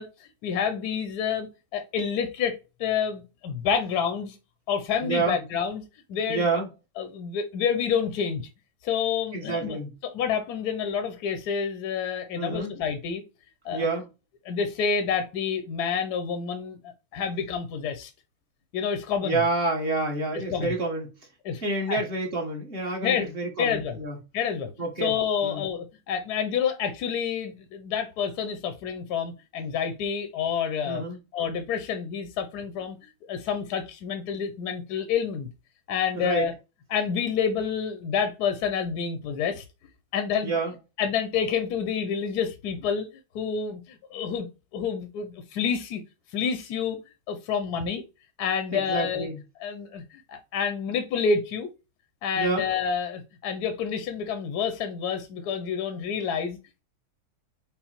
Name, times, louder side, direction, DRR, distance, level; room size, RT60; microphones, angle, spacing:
voice 1, 0.0-1.5 1.7-4.4 4.7-5.8 6.1-6.5 7.0-8.5 8.8-9.8 10.0-13.2 13.6-13.9 14.5-18.1 18.7-19.4 20.5-20.7 21.4-21.6 21.9-22.0 23.0-23.2 23.6-24.0 24.3-24.7 25.0-31.0 31.3-33.0 33.3-35.5 35.9-36.5 36.9-39.6 40.1-40.5 41.0-43.1 43.3-44.5 44.7-46.0 46.3-47.0 47.3-48.0 48.4-49.3 49.6-50.0 50.3-51.7 52.2-56.8, left 7 dB, 65° left, 7 dB, 1.0 m, -28 dB
voice 2, 5.0-5.4 6.3-6.7 9.3-9.9 12.3-12.7 13.7-14.0 19.2-21.1 21.6-24.2 24.8-25.1 25.4-25.6 30.8-31.2 36.1-36.5 40.4-40.7 48.7-49.4 52.3-52.6, right 3 dB, 35° right, 1 dB, 1.1 m, -28 dB
5.6 x 2.0 x 4.3 m, 0.28 s
omnidirectional pair, 2.3 m